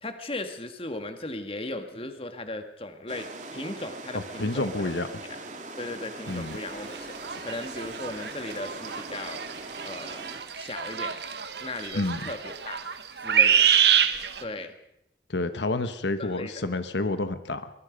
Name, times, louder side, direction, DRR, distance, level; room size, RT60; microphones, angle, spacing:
voice 1, 0.0-4.9 5.8-7.1 7.4-9.4 9.8-10.3 10.6-11.2 11.6-12.8 13.2-13.7 14.4-14.7 16.2-16.5, left 2 dB, 30° left, 7 dB, 1.9 m, -37 dB
sound 1, 3.1-10.4, right 2 dB, 45° right, 2.4 m, -41 dB
voice 2, 4.1-5.1 6.3-6.6 11.9-12.2 15.3-17.7, left 2 dB, 85° left, 10 dB, 1.2 m, -29 dB
sound 2, 6.5-6.6 7.0-14.4, right 8 dB, 75° right, 1.4 m, -26 dB
23.0 x 21.5 x 5.3 m, 0.82 s
head